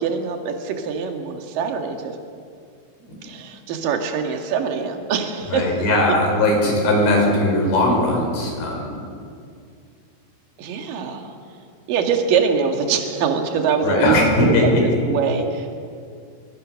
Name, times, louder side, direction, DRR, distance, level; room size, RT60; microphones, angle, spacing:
voice 1, 0.0-2.2 3.2-5.8 6.1-6.2 6.9-7.2 10.6-11.3 11.9-15.8, right 6 dB, 60° right, 3 dB, 3.2 m, -24 dB
voice 2, 5.5-8.9 13.8-14.6, left 1 dB, 85° left, 0 dB, 7.2 m, -19 dB
24.0 x 23.5 x 6.4 m, 2.3 s
omnidirectional pair, 4.9 m